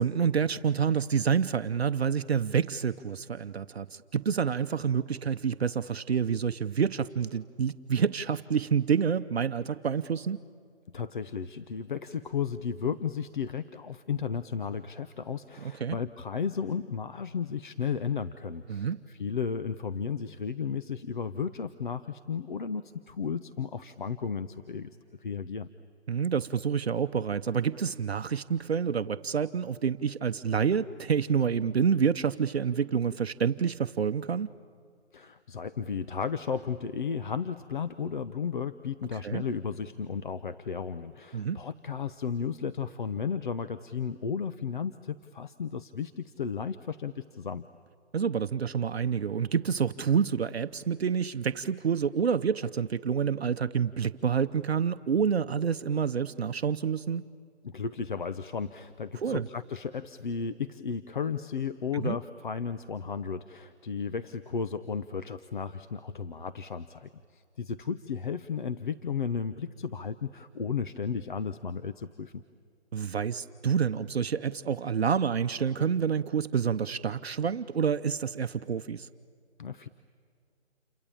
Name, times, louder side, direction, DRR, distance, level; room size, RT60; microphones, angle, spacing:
voice 1, 0.0-10.4 15.6-16.0 18.7-19.0 26.1-34.5 39.2-39.4 41.3-41.6 48.1-57.3 59.2-59.5 61.9-62.2 72.9-79.1, right 7 dB, 65° right, 10 dB, 0.8 m, -28 dB
voice 2, 10.9-24.9 25.2-25.7 35.1-47.7 57.6-72.3 79.6-79.9, left 6 dB, 45° left, 11 dB, 0.8 m, -34 dB
28.5 x 23.5 x 8.6 m, 2.3 s
hypercardioid pair, 160°, 34 cm